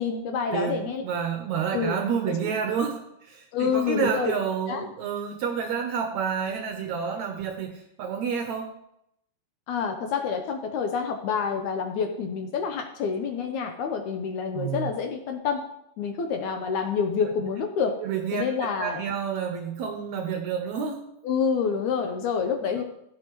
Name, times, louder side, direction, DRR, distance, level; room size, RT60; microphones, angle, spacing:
voice 1, 0.0-1.0 1.7-2.0 2.3-2.4 3.5-4.3 4.7-4.9 9.7-15.6 16.0-17.9 18.3-19.0 21.2-22.8, left 6 dB, 75° left, 5 dB, 2.0 m, -27 dB
voice 2, 0.5-8.7 14.5-14.9 18.0-18.5 18.8-21.0, right 7 dB, 75° right, 5 dB, 1.7 m, -29 dB
15.5 x 7.8 x 3.0 m, 0.78 s
omnidirectional pair, 4.0 m